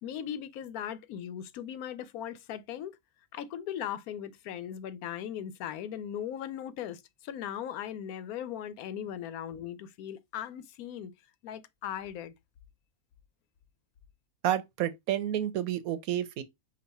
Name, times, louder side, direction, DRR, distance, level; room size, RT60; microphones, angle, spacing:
voice 1, 0.0-2.9 3.3-11.1 11.4-12.3, left 10 dB, 85° left, 1.1 m, -38 dB
voice 2, 14.4-16.4, right 11 dB, 80° right, 1.1 m, -30 dB
5.3 x 2.3 x 4.1 m
omnidirectional pair, 1.5 m